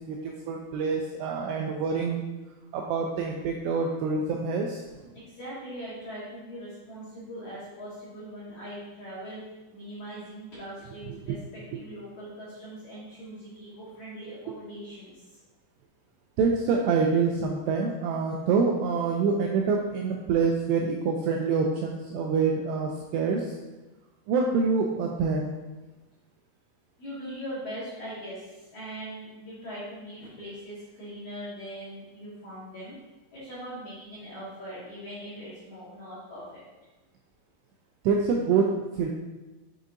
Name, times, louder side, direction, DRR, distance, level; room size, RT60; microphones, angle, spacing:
voice 1, 0.0-2.2 2.7-5.0 11.1-11.4 11.7-11.8 16.4-23.6 24.3-25.6 38.0-39.1, right 5 dB, 85° right, 0 dB, 2.4 m, -26 dB
voice 2, 5.1-9.4 9.7-15.2 27.0-33.0 33.3-36.6, equal, 60° left, -9 dB, 2.0 m, -41 dB
7.2 x 6.4 x 2.6 m, 1.1 s
omnidirectional pair, 5.3 m